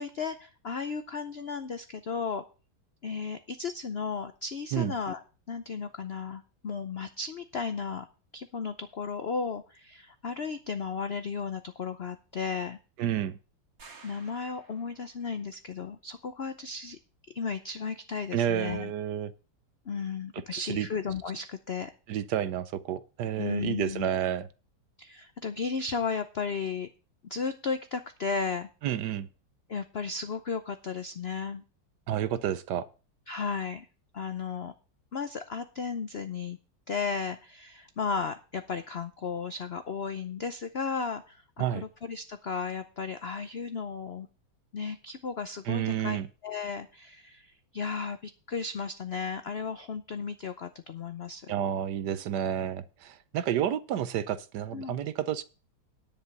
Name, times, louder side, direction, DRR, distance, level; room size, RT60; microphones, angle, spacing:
voice 1, 0.0-2.4 3.0-5.2 5.5-8.1 8.3-12.8 14.0-17.0 17.3-18.9 19.9-21.9 23.4-24.1 25.0-26.9 27.2-28.7 29.7-31.6 33.3-33.9 34.1-34.7 35.1-36.6 36.9-44.3 44.7-51.7 54.7-55.0, left 5 dB, 90° left, 9 dB, 0.5 m, -34 dB
voice 2, 13.0-13.3 18.3-19.3 20.3-20.9 22.1-24.5 28.8-29.3 32.1-32.9 41.6-41.8 45.7-46.3 51.5-55.4, right 10 dB, 70° right, 14 dB, 1.1 m, -30 dB
sound 1, 13.8-15.3, right 4 dB, 45° right, 2.4 m, -53 dB
10.5 x 5.3 x 8.1 m, 0.35 s
omnidirectional pair, 2.1 m